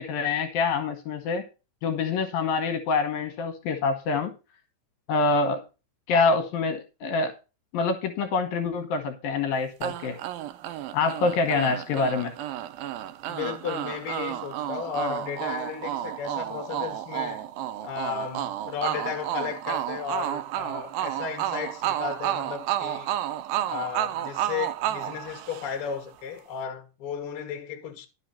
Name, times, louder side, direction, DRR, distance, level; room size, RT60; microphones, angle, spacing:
voice 1, 0.0-1.5 1.8-4.3 5.1-5.6 6.1-7.3 7.7-10.2 10.9-12.3, left 4 dB, 70° left, 2.7 m, -26 dB
sound 1, 9.8-26.0, right 12 dB, 80° right, 2.2 m, -31 dB
voice 2, 13.3-17.4 17.8-23.1 23.7-28.1, left 7 dB, 50° left, 1.9 m, -34 dB
12.0 x 5.8 x 5.6 m
omnidirectional pair, 4.8 m